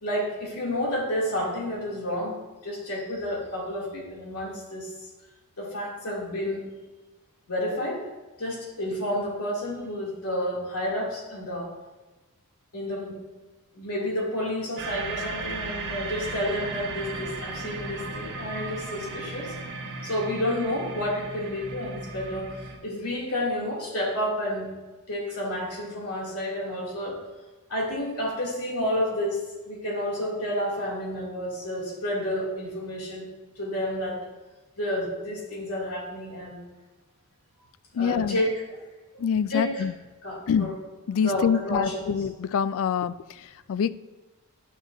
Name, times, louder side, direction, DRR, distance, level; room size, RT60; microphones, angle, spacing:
voice 1, 0.0-2.4 2.6-4.9 5.6-6.6 7.5-8.0 8.4-11.7 12.7-13.2 13.7-19.5 20.0-24.7 25.1-27.2 27.7-33.2 33.6-34.2 34.8-36.6 37.9-38.8 39.5-39.8 40.2-40.7 41.2-42.3, left 1 dB, 85° left, -3 dB, 2.6 m, -30 dB
sound 1, 14.8-22.8, right 3 dB, 55° right, 1.3 m, -36 dB
voice 2, 38.0-38.4 39.2-39.9 40.5-40.7 41.1-43.1 43.7-43.9, left 7 dB, 65° left, 15 dB, 0.3 m, -25 dB
11.0 x 6.3 x 2.6 m, 1.2 s
head